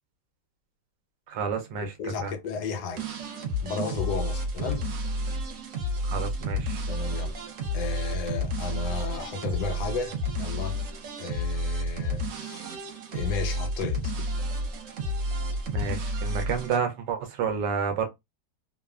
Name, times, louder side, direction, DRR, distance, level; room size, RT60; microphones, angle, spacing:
voice 1, 1.3-2.3 6.0-6.8 15.7-18.1, right 6 dB, 80° right, 1.3 m, -30 dB
voice 2, 2.0-3.0 3.6-4.8 6.9-7.3 7.7-10.8 11.2-12.7 13.1-14.1, left 4 dB, 75° left, 1.2 m, -33 dB
sound 1, 3.0-16.8, equal, 65° right, 0.8 m, -31 dB
3.1 x 2.0 x 2.3 m
omnidirectional pair, 1.8 m